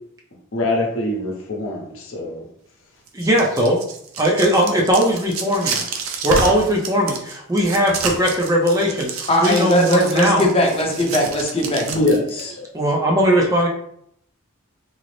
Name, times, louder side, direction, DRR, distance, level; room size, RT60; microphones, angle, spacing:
voice 1, 0.5-2.4 11.9-12.7, left 1 dB, 70° left, -1 dB, 0.8 m, -23 dB
voice 2, 3.1-3.8 4.2-5.8 6.2-10.4 12.7-13.7, equal, 15° right, -2 dB, 0.5 m, -19 dB
sound 1, 3.1-12.4, right 5 dB, 70° right, 0.5 m, -29 dB
voice 3, 9.3-12.2, equal, 25° left, -1 dB, 0.7 m, -19 dB
3.8 x 2.0 x 3.1 m, 0.70 s
head